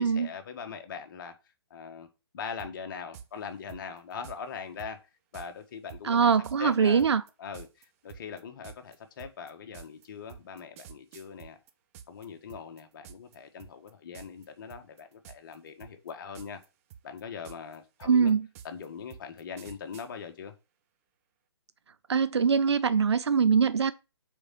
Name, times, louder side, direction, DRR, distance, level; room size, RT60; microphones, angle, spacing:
voice 1, 0.0-1.3 1.7-2.1 2.3-5.0 5.3-6.3 6.6-7.0 7.4-11.6 12.1-16.6 17.0-18.3 18.6-20.5, left 6 dB, 50° left, 1.5 m, -41 dB
sound 1, 2.6-2.7 3.1-3.3 3.7-4.4 4.8-4.9 5.3-5.5 5.9-12.2 12.5-13.3 13.6-13.9 14.1-14.4 14.7-15.5 15.8-16.6 16.9-20.1, right 8 dB, 30° right, 0.8 m, -48 dB
voice 2, 6.0-7.2 18.0-18.5 22.1-23.9, right 6 dB, 75° right, 0.5 m, -23 dB
6.9 x 4.8 x 5.8 m
figure-of-eight pair, 135°, 14 cm